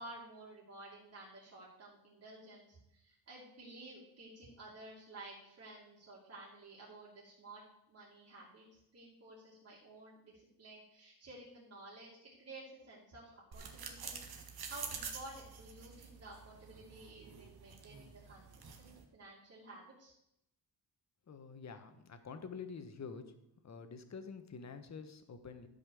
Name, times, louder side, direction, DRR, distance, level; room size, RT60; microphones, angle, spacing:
voice 1, 0.0-7.6 7.9-12.1 12.4-14.2 14.7-20.1, right 2 dB, 40° right, -5 dB, 2.8 m, -53 dB
sound 1, 13.5-19.0, right 6 dB, 65° right, 1.7 m, -48 dB
voice 2, 21.3-23.2 23.6-25.7, left 5 dB, 40° left, 8 dB, 1.2 m, -47 dB
12.0 x 5.6 x 7.0 m, 0.81 s
wide cardioid pair, 140°, 40 cm